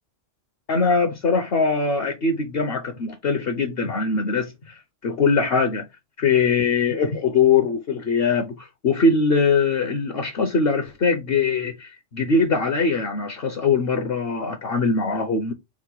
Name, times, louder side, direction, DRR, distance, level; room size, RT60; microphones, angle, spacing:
voice 1, 0.7-5.9 6.2-15.5, left 4 dB, 55° left, 0.9 m, -22 dB
4.7 x 2.1 x 4.4 m
omnidirectional pair, 1.3 m